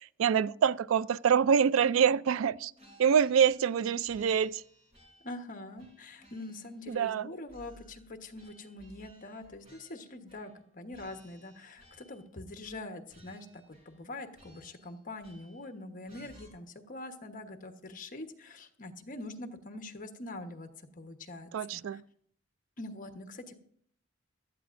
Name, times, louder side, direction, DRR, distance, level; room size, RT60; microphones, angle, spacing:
voice 1, 0.0-2.7 3.0-4.6 6.9-7.3 21.5-22.0, right 7 dB, 80° right, 0.3 m, -26 dB
sound 1, 2.8-3.8 4.1-5.4 5.8-7.2 7.5-10.6 10.9-12.3 12.6-12.8 13.1-14.1 14.3-15.7 16.1-16.5, equal, 30° right, 4.0 m, -59 dB
voice 2, 5.2-22.0 22.8-23.5, left 2 dB, 45° left, 1.2 m, -44 dB
16.5 x 12.5 x 2.6 m
head